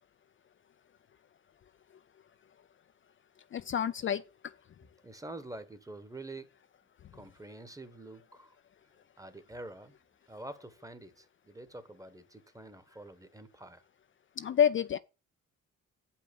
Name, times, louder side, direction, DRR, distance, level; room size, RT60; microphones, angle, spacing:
voice 1, 3.5-4.5 14.4-15.0, left 8 dB, 40° left, 0.5 m, -28 dB
voice 2, 5.0-6.5 7.1-8.6 9.2-10.0 10.3-13.8, right 2 dB, 10° right, 1.2 m, -47 dB
7.4 x 5.6 x 6.8 m
cardioid pair, 90°, 30 cm